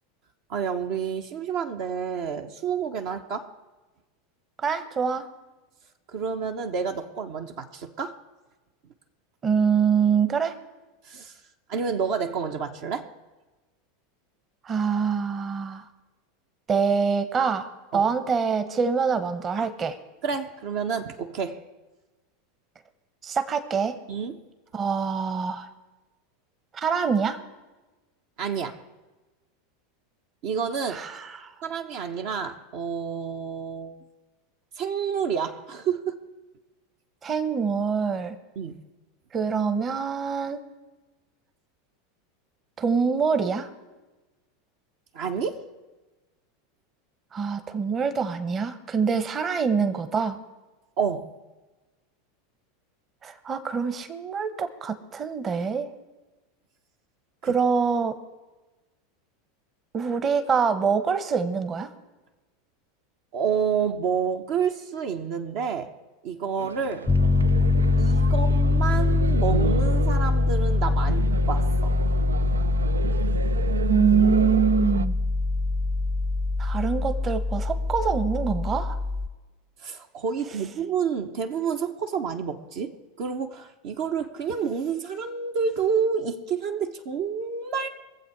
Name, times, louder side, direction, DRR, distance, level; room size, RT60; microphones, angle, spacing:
voice 1, 0.5-3.5 6.1-8.2 11.0-11.4 11.7-13.1 17.9-18.1 19.6-19.7 20.2-21.6 24.1-24.4 28.4-28.8 30.4-31.0 31.6-34.0 34.8-36.2 38.6-38.8 45.1-45.6 51.0-51.3 63.3-65.9 66.2-67.1 68.0-72.0 79.8-87.9, right 6 dB, 60° right, 4 dB, 1.0 m, -29 dB
voice 2, 4.6-5.3 9.4-10.6 14.6-15.9 16.7-20.0 23.2-24.0 24.7-25.7 26.7-27.4 30.9-31.5 37.2-38.4 39.3-40.6 42.8-43.7 47.3-50.4 53.2-55.9 57.4-58.2 59.9-61.9 73.9-75.2 76.6-79.0, right 6 dB, 30° right, 11 dB, 1.1 m, -25 dB
sound 1, 66.6-75.1, right 5 dB, 90° right, 0.3 m, -32 dB
Piano, 67.1-79.3, left 3 dB, 10° left, 0.4 m, -23 dB
22.0 x 7.6 x 4.8 m, 1.2 s
hypercardioid pair, 90°, 0 cm